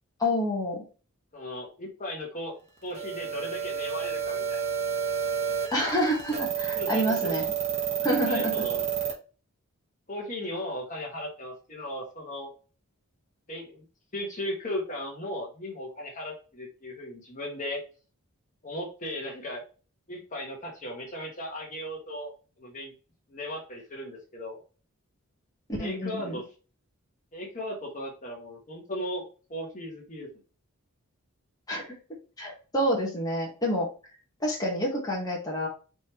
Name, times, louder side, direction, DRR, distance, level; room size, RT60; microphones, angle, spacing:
voice 1, 0.2-0.8 5.7-7.5 8.0-8.6 25.8-26.4 31.7-31.9 32.4-33.9 34.4-35.7, equal, 15° left, -2 dB, 1.3 m, -28 dB
voice 2, 1.3-2.5 2.8-4.6 6.8-7.4 8.2-8.9 10.1-12.5 13.5-13.8 14.1-17.8 18.6-19.6 20.1-22.3 22.6-22.9 23.3-24.6 25.8-26.5 27.3-29.2 29.5-30.3, left 1 dB, 35° left, -1 dB, 1.3 m, -36 dB
sound 1, 2.9-9.1, right 8 dB, 30° right, 1.2 m, -30 dB
5.2 x 3.5 x 3.0 m, 0.34 s
head